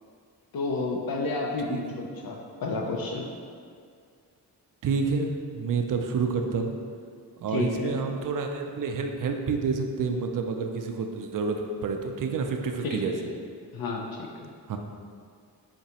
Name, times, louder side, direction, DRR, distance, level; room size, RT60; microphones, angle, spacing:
voice 1, 0.5-3.3 7.5-8.0 12.8-13.4 13.7-14.5, left 3 dB, 60° left, 0 dB, 0.5 m, -31 dB
voice 2, 4.8-6.7 7.4-13.1 14.7-14.8, right 5 dB, 55° right, 4 dB, 0.4 m, -28 dB
4.9 x 2.2 x 2.8 m, 2.1 s
cardioid pair, 55°, 41 cm